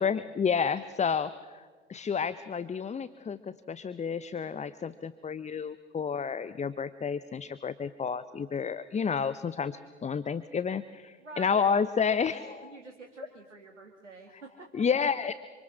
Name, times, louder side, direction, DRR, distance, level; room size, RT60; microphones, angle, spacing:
voice 1, 0.0-12.5 14.7-15.4, left 6 dB, 20° left, 15 dB, 0.8 m, -30 dB
voice 2, 11.2-14.7, right 3 dB, 85° right, 3 dB, 2.1 m, -48 dB
27.0 x 26.5 x 6.4 m, 1.5 s
figure-of-eight pair, 65°, 36 cm